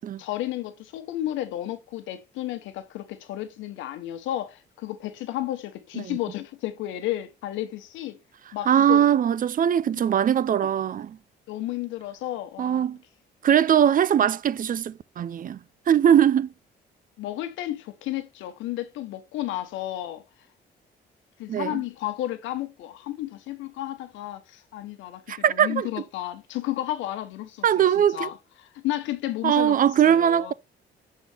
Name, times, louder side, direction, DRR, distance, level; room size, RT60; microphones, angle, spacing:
voice 1, 0.2-8.2 8.5-9.0 9.9-10.0 11.5-12.9 17.2-20.2 21.4-27.8 28.1-29.8 30.0-30.5, left 14 dB, 90° left, 1.1 m, -32 dB
voice 2, 8.7-11.2 12.6-13.0 13.4-15.6 15.9-16.5 21.5-21.8 25.3-25.9 27.6-28.3 29.4-30.5, right 9 dB, 45° right, 0.5 m, -21 dB
7.7 x 4.2 x 3.4 m
cardioid pair, 80°, 19 cm